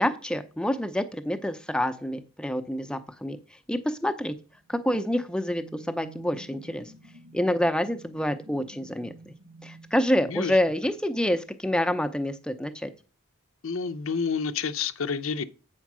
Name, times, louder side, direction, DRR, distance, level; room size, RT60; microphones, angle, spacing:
voice 1, 0.0-3.4 3.7-4.4 4.7-6.9 7.3-9.3 9.6-12.9, left 1 dB, 5° left, 0.6 m, -27 dB
sound 1, 4.5-11.1, right 2 dB, 75° right, 1.0 m, -50 dB
voice 2, 13.6-15.4, left 5 dB, 65° left, 0.6 m, -29 dB
8.4 x 4.5 x 6.1 m
head